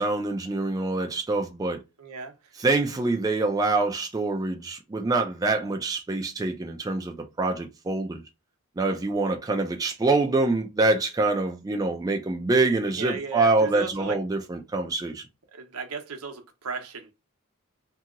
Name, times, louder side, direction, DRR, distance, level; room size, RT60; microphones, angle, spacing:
voice 1, 0.0-1.8 2.6-8.2 8.8-15.2, right 3 dB, 15° right, 0.3 m, -25 dB
voice 2, 2.0-2.5 12.9-14.2 15.5-17.1, right 5 dB, 80° right, 0.7 m, -36 dB
2.8 x 2.7 x 2.4 m
head